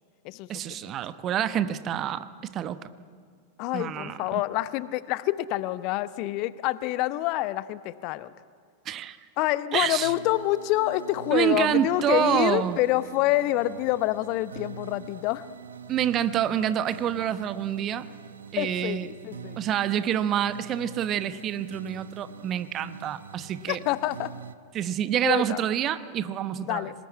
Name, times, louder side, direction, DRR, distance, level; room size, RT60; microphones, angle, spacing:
voice 1, 0.5-2.9 3.7-4.4 8.9-9.2 9.7-10.1 11.3-12.8 15.9-18.1 18.5-19.1 19.6-23.8 24.7-26.9, right 10 dB, 30° right, 14 dB, 1.0 m, -27 dB
voice 2, 3.6-8.3 9.4-15.5 18.6-19.6 23.7-24.3 25.2-25.6 26.6-26.9, left 16 dB, 40° left, 16 dB, 0.8 m, -27 dB
sound 1, 10.0-24.5, right 6 dB, 70° right, 0.9 m, -45 dB
24.5 x 20.0 x 9.7 m, 2.1 s
figure-of-eight pair, 90°, 0 cm